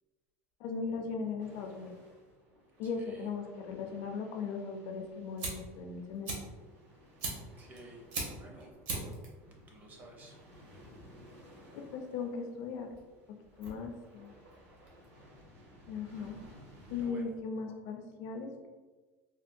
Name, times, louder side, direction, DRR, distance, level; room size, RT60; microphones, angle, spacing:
voice 1, 0.6-1.9 2.8-6.3 11.7-12.9 13.6-14.3 15.9-16.4 16.9-18.7, left 5 dB, 60° left, 4 dB, 0.5 m, -38 dB
sound 1, 1.4-17.1, equal, 70° right, 1.3 m, -58 dB
voice 2, 2.8-3.3 7.6-8.7 9.0-9.3 9.7-10.4 17.0-17.3, right 1 dB, 25° right, -1 dB, 0.6 m, -53 dB
Fire, 4.9-15.4, right 2 dB, 50° right, 0.8 m, -43 dB
3.6 x 2.2 x 2.5 m, 1.3 s
cardioid pair, 160°, 7 cm